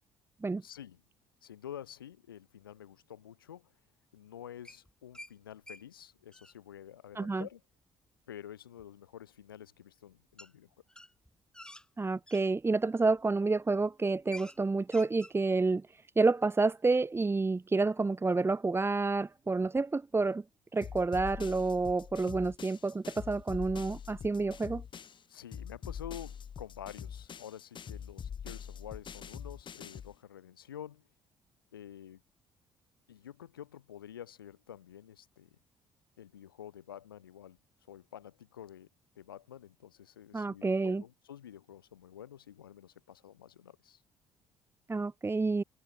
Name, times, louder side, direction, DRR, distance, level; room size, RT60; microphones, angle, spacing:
voice 1, 0.6-1.0 1.4-3.7 4.1-7.6 8.3-10.7 25.3-31.0 31.7-32.2 33.1-35.5 36.2-37.6 37.9-38.9 39.2-44.0, left 10 dB, 85° left, 2.6 m, -49 dB
sound 1, 4.6-5.3 5.7-5.8 6.1-6.5 8.8-8.9 10.4-10.5 10.9-12.4 13.1-13.4 13.7-13.8 14.1-14.6 14.8-15.4, left 1 dB, 5° left, 2.6 m, -49 dB
voice 2, 7.1-7.5 12.0-20.4 20.7-24.8 40.3-41.0 44.9-45.6, right 3 dB, 20° right, 1.5 m, -29 dB
sound 2, 20.8-25.2 25.5-30.1, left 7 dB, 45° left, 4.0 m, -44 dB
open air
figure-of-eight pair, 50°, 12 cm